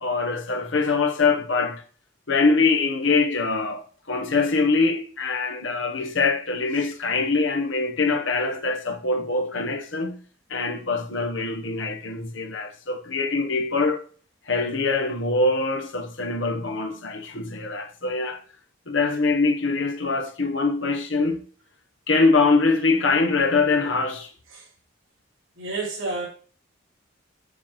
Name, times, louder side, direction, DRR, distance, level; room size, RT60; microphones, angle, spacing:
voice 1, 0.0-1.8 2.3-10.2 10.5-14.0 14.5-18.4 18.9-21.4 22.1-24.3, left 3 dB, 65° left, 1.2 m, -23 dB
voice 2, 25.6-26.3, right 3 dB, 90° right, 3.1 m, -30 dB
7.2 x 5.9 x 3.1 m
head